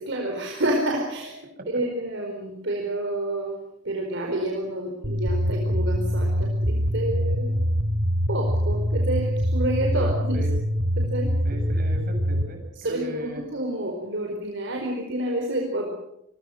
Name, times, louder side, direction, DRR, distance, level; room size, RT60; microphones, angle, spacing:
voice 1, 0.0-3.6 3.8-7.6 8.3-10.5 11.0-11.3 12.8-15.9, right 1 dB, 60° right, 1 dB, 4.5 m, -29 dB
sound 1, 5.0-12.4, equal, 75° right, 4.1 m, -24 dB
voice 2, 9.9-10.5 11.4-13.4, right 1 dB, 45° right, 3 dB, 7.7 m, -37 dB
26.5 x 23.5 x 6.5 m, 0.82 s
head